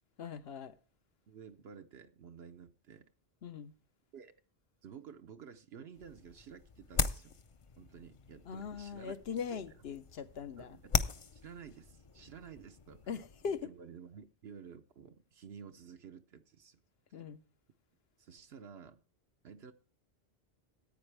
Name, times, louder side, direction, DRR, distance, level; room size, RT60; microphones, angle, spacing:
voice 1, 0.2-0.7 3.4-3.7 8.5-10.8 13.1-13.7 17.1-17.4, left 6 dB, 70° left, 1.1 m, -40 dB
voice 2, 1.3-3.1 4.1-4.3 4.8-7.4 7.8-9.2 9.5-9.7 10.6-11.0 11.3-13.0 13.6-16.8 18.2-19.0 19.4-19.7, right 7 dB, 75° right, 1.0 m, -52 dB
sound 1, 5.9-13.6, left 4 dB, 40° left, 0.6 m, -40 dB
14.5 x 8.8 x 3.3 m
omnidirectional pair, 1.1 m